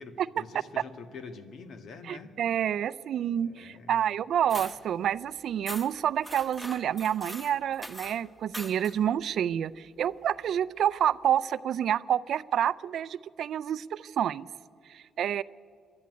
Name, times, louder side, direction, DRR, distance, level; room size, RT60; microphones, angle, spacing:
voice 1, 0.0-2.3 3.3-4.0, left 4 dB, 65° left, 8 dB, 1.8 m, -45 dB
voice 2, 2.1-14.5 14.9-15.4, right 9 dB, 70° right, 17 dB, 0.5 m, -28 dB
sound 1, 4.5-4.8 5.7-5.9 6.2-8.2 8.5-9.0, equal, 5° left, 1.5 m, -41 dB
26.0 x 11.5 x 9.6 m, 2.2 s
cardioid pair, 90°, 0 cm